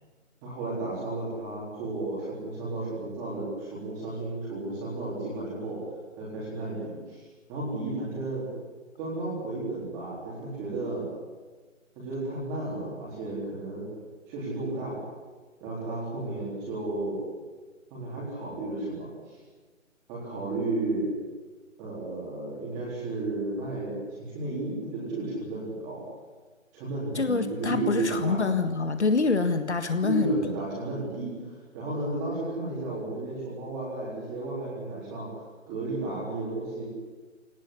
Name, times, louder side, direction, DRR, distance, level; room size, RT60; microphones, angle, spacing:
voice 1, 0.4-5.8 6.2-7.2 7.5-8.5 9.0-11.1 12.0-13.9 14.3-15.0 15.6-17.2 17.9-19.4 20.1-21.1 21.8-26.0 26.7-28.4 30.0-35.3 35.7-36.8, right 2 dB, 10° right, -6 dB, 3.8 m, -33 dB
voice 2, 27.2-30.4, left 4 dB, 55° left, 8 dB, 1.8 m, -26 dB
21.5 x 18.5 x 9.9 m, 1.3 s
hypercardioid pair, 175°, 40 cm